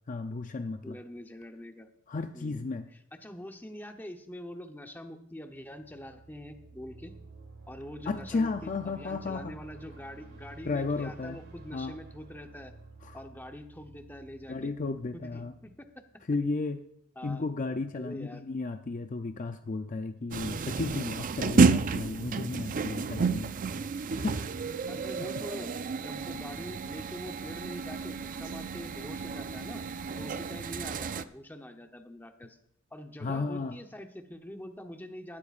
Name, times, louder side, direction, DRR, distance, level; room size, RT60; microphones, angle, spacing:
voice 1, 0.1-1.0 2.1-2.8 8.1-9.5 10.6-11.4 11.7-12.0 13.0-13.2 14.5-15.5 16.3-16.8 17.2-23.5 24.2-24.4 25.2-25.3 33.2-33.8, left 3 dB, 40° left, 8 dB, 0.5 m, -33 dB
voice 2, 0.8-1.9 2.3-2.6 3.2-7.1 7.7-12.7 13.1-14.7 15.1-15.7 17.2-17.5 17.9-18.5 23.7-23.8 24.9-25.7 26.0-29.8 30.2-32.6 32.9-35.4, left 1 dB, 10° left, 5 dB, 0.9 m, -44 dB
sound 1, 5.5-16.2, right 3 dB, 60° right, 2.8 m, -51 dB
sound 2, 20.3-31.2, right 4 dB, 40° right, 0.4 m, -30 dB
18.5 x 12.5 x 2.5 m, 0.75 s
head